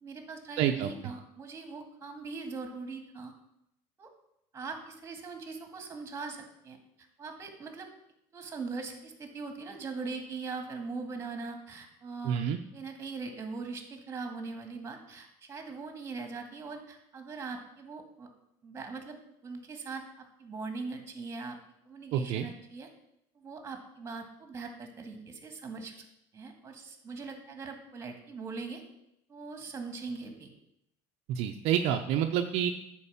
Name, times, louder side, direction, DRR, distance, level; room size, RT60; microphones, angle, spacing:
voice 1, 0.0-3.3 4.0-4.1 4.5-6.8 7.2-7.9 8.3-12.4 12.7-18.3 18.6-19.2 19.4-21.6 21.9-22.9 23.4-26.1 26.3-28.8 29.3-30.5, right 4 dB, 25° right, 5 dB, 1.9 m, -41 dB
voice 2, 0.6-0.9 12.2-12.6 22.1-22.5 31.3-32.7, right 9 dB, 65° right, 4 dB, 0.7 m, -28 dB
9.8 x 4.7 x 7.2 m, 0.80 s
cardioid pair, 130°, 11 cm